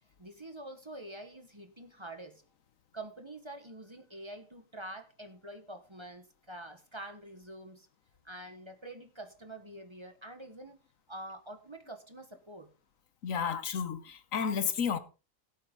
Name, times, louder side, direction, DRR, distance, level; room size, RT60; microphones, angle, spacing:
voice 1, 0.2-2.4 2.9-7.9 8.2-10.8 11.1-12.7, right 1 dB, 20° right, 1.4 m, -46 dB
voice 2, 13.2-15.0, left 6 dB, 80° left, 1.5 m, -32 dB
17.0 x 8.3 x 4.0 m
omnidirectional pair, 1.4 m